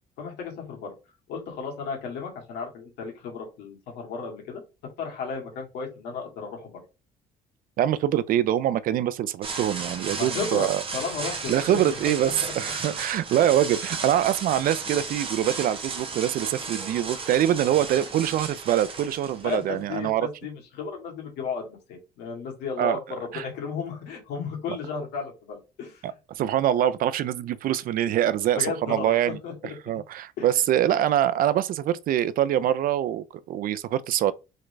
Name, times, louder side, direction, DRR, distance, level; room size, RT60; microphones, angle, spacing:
voice 1, 0.2-0.9 1.3-4.6 5.0-6.8 10.1-12.5 19.4-26.1 28.2-29.8 30.4-30.6, left 5 dB, 85° left, 1.9 m, -34 dB
voice 2, 7.8-10.8 11.5-20.3 22.8-23.0 23.3-23.5 26.0-29.4 29.6-34.3, right 11 dB, 60° right, 0.4 m, -24 dB
sound 1, 9.4-20.1, right 4 dB, 30° right, 0.9 m, -35 dB
3.7 x 3.2 x 3.3 m
cardioid pair, 110°, 17 cm